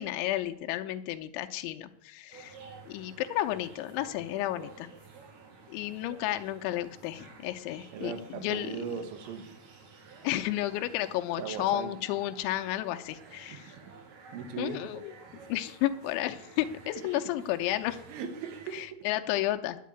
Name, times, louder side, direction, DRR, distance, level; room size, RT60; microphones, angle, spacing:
voice 1, 0.0-2.6 2.9-4.9 5.7-8.8 10.2-13.7 14.6-15.1 15.5-18.0 18.7-19.8, left 14 dB, 85° left, 6 dB, 3.1 m, -32 dB
sound 1, 2.3-18.9, right 4 dB, 55° right, 2.4 m, -52 dB
voice 2, 7.9-9.6 11.4-11.9 13.5-13.6 14.3-14.9 18.1-19.1, right 7 dB, 90° right, 8 dB, 3.9 m, -38 dB
10.5 x 8.5 x 9.5 m, 0.70 s
omnidirectional pair, 5.4 m